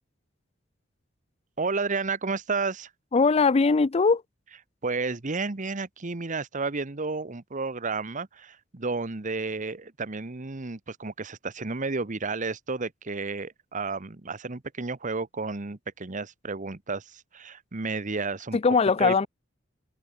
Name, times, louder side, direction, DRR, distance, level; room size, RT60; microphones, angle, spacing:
voice 1, 1.6-2.9 4.8-18.6 19.0-19.2, right 4 dB, 40° right, 1.1 m, -32 dB
voice 2, 3.1-4.2 18.5-19.3, left 4 dB, 30° left, 0.4 m, -20 dB
head